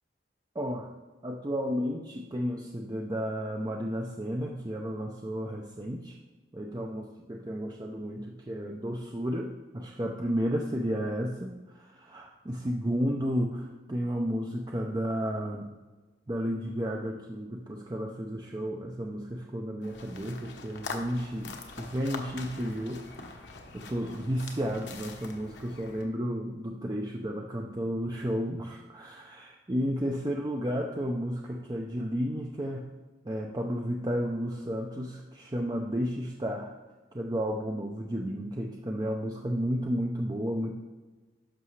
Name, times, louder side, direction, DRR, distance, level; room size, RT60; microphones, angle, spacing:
voice 1, 0.5-0.9 1.2-6.2 6.5-15.7 16.3-32.9 33.2-36.7 37.1-40.7, equal, 20° right, 1 dB, 0.5 m, -32 dB
sound 1, 19.8-26.0, left 4 dB, 70° left, 1.1 m, -43 dB
11.0 x 6.5 x 3.2 m, 1.3 s
head